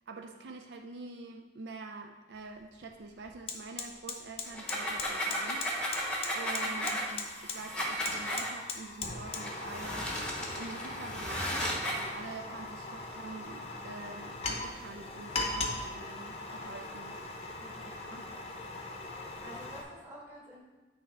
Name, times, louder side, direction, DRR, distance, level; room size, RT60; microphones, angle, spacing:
voice 1, 0.1-5.6 6.3-10.2 10.6-17.2 18.1-18.2, right 3 dB, 70° right, 4 dB, 0.4 m, -46 dB
Fire, 2.3-2.5 2.8-19.8, left 3 dB, 35° left, 0.7 m, -40 dB
sound 1, 4.5-8.5 9.3-12.1, equal, 5° left, 0.8 m, -35 dB
voice 2, 6.6-7.0 17.6-18.4 19.2-20.6, equal, 15° right, -5 dB, 1.5 m, -50 dB
8.5 x 3.4 x 4.8 m, 1.2 s
head